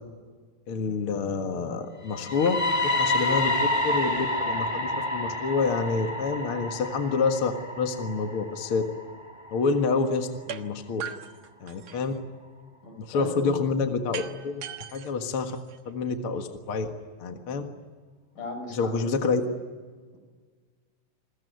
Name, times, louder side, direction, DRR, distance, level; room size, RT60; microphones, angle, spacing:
voice 1, 0.7-2.6 2.8-3.6 3.8-8.8 9.5-11.0 11.6-12.1 13.0-14.6 14.9-15.5 15.9-16.9 17.2-17.6 18.7-19.4, left 4 dB, 45° left, 5 dB, 2.1 m, -27 dB
sound 1, 2.1-10.0, left 2 dB, 10° right, 3.4 m, -29 dB
sound 2, 10.5-10.6 11.0-12.2 14.1-16.1, right 9 dB, 60° right, 2.2 m, -39 dB
voice 2, 12.8-13.8 18.4-19.1, left 1 dB, 65° left, 5 dB, 7.2 m, -37 dB
29.0 x 21.5 x 9.4 m, 1.5 s
omnidirectional pair, 4.0 m